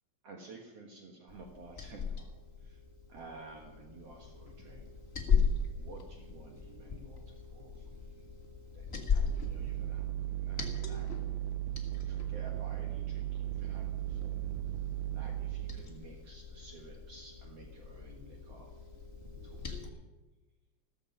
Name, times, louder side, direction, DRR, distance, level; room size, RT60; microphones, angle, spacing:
voice 1, 0.2-2.3 2.6-2.8 3.1-4.9 5.8-8.2 8.7-8.8 9.1-11.2 12.1-14.4 15.1-18.7 19.4-20.0, right 3 dB, 60° right, 1 dB, 2.6 m, -53 dB
Liquid, 1.3-19.9, left 5 dB, 30° left, 1.4 m, -38 dB
sound 1, 9.3-15.9, right 14 dB, 75° right, 1.6 m, -36 dB
14.5 x 14.0 x 5.4 m, 1.1 s
omnidirectional pair, 3.4 m